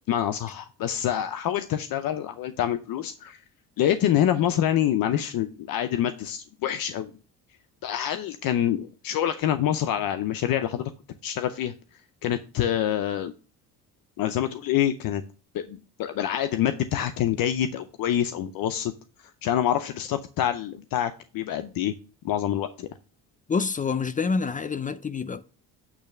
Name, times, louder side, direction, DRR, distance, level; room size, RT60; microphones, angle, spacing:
voice 1, 0.1-3.4 3.8-7.1 7.8-10.9 11.2-11.7 12.2-13.3 14.2-15.2 15.5-18.9 19.4-22.0 22.2-22.9, left 11 dB, 65° left, 0.7 m, -26 dB
voice 2, 23.5-25.4, left 5 dB, 20° left, 0.4 m, -27 dB
8.6 x 3.2 x 6.6 m
cardioid pair, 100°, 37 cm